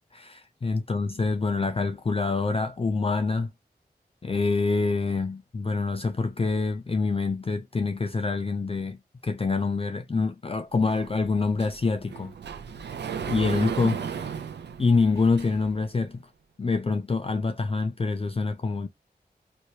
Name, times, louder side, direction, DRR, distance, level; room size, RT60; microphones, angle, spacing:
voice 1, 0.1-3.5 4.2-12.3 13.3-14.3 14.8-16.2 16.6-18.9, left 4 dB, 35° left, 0.4 m, -26 dB
Sliding door, 10.9-15.8, right 7 dB, 90° right, 0.4 m, -35 dB
2.8 x 2.8 x 3.1 m
cardioid pair, 50°, 17 cm